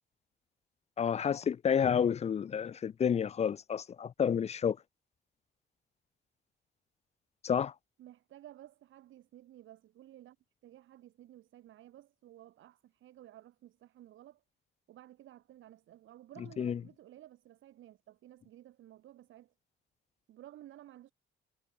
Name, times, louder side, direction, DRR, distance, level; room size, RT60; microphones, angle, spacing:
voice 1, 1.0-4.8 7.4-7.7 16.6-16.8, left 7 dB, 35° left, 0.4 m, -30 dB
voice 2, 8.0-10.4 10.6-14.4 14.9-19.5 20.3-21.1, right 13 dB, 75° right, 2.2 m, -55 dB
cardioid pair, 90°, 20 cm